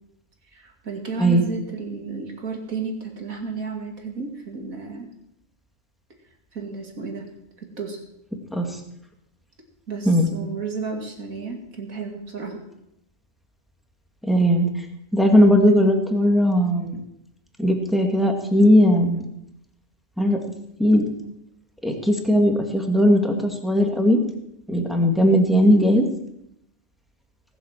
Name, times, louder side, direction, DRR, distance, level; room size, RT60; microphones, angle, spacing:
voice 1, 0.5-5.1 6.5-7.3 7.6-8.0 9.9-12.6, right 4 dB, 75° right, 2 dB, 3.0 m, -32 dB
voice 2, 14.2-14.7 15.1-17.0 17.6-19.3 20.2-20.4 20.8-21.0 21.8-24.2 24.7-26.0, equal, ahead, 3 dB, 2.1 m, -18 dB
19.0 x 7.9 x 7.5 m, 0.81 s
omnidirectional pair, 1.5 m